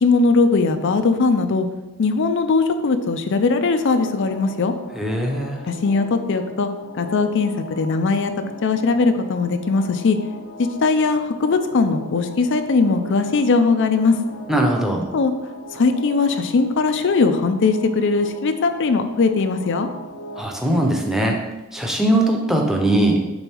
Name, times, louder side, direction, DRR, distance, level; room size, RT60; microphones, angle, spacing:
voice 1, 0.0-1.7 2.0-4.7 5.7-6.7 6.9-8.3 8.6-10.2 10.6-14.2 15.1-15.3 15.7-19.9, left 4 dB, 60° left, 8 dB, 0.5 m, -19 dB
sound 1, 3.6-20.4, left 1 dB, 80° left, 0.9 m, -39 dB
voice 2, 4.9-5.6 14.5-15.1 20.3-21.4 21.7-23.2, right 1 dB, ahead, 0 dB, 0.8 m, -20 dB
5.4 x 3.9 x 4.5 m, 1.0 s
head